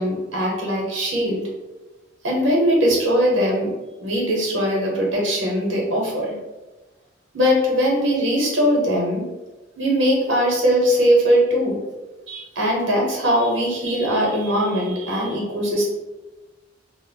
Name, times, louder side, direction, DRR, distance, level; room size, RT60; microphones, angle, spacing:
voice 1, 0.0-1.5 2.2-3.7 4.0-6.3 7.3-9.2 9.8-11.8 12.3-15.8, equal, 85° right, -2 dB, 0.8 m, -20 dB
2.1 x 2.0 x 3.7 m, 1.1 s
head